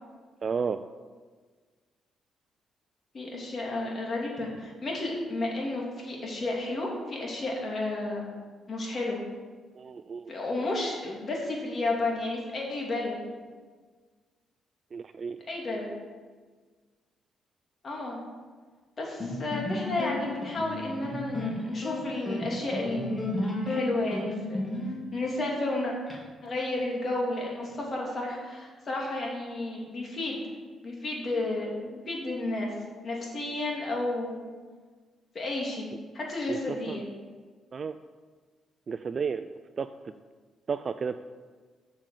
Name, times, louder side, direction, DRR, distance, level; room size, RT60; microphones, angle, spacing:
voice 1, 0.4-0.8 9.8-10.3 14.9-15.4 36.5-36.6 36.9-37.0 37.7-37.9 38.9-39.5 39.8-40.1 40.7-41.2, right 5 dB, 45° right, 11 dB, 0.4 m, -32 dB
voice 2, 3.1-8.3 8.7-9.2 10.3-13.2 15.5-15.9 17.8-18.2 19.0-24.6 25.1-25.9 26.4-30.4 30.8-32.7 33.0-34.4 35.3-35.9 36.1-37.1, left 2 dB, 45° left, -2 dB, 2.9 m, -32 dB
sound 1, 19.2-26.2, left 1 dB, 25° left, 2.5 m, -34 dB
7.4 x 6.4 x 7.3 m, 1.5 s
cardioid pair, 70°, 0 cm